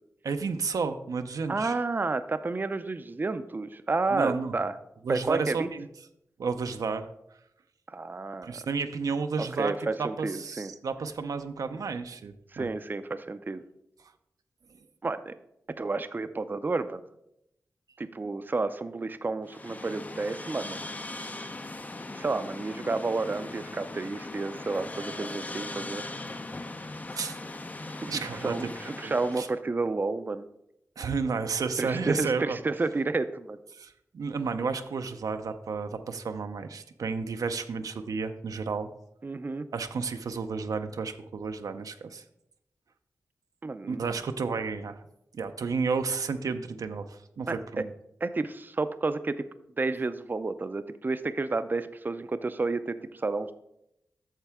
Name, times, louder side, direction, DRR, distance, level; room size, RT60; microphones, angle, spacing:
voice 1, 0.2-1.7 4.1-4.5 5.0-5.9 6.4-7.1 8.4-9.7 10.0-12.7 27.1-27.4 28.1-28.5 29.0-29.5 31.0-32.6 33.8-38.9 39.7-42.2 43.9-45.0 45.3-47.8, right 5 dB, 85° right, 7 dB, 0.5 m, -32 dB
voice 2, 1.5-4.8 5.1-5.7 7.9-8.6 9.4-10.8 12.5-13.6 15.0-15.3 15.8-17.0 18.0-20.8 22.2-26.0 28.0-30.5 31.8-33.6 39.2-39.7 43.6-44.0 47.5-47.8 48.2-49.4 49.8-53.5, right 3 dB, 35° right, 11 dB, 0.4 m, -31 dB
sound 1, 19.5-29.6, left 2 dB, 25° left, 0.5 m, -39 dB
8.9 x 6.6 x 3.5 m, 0.80 s
cardioid pair, 65°, 6 cm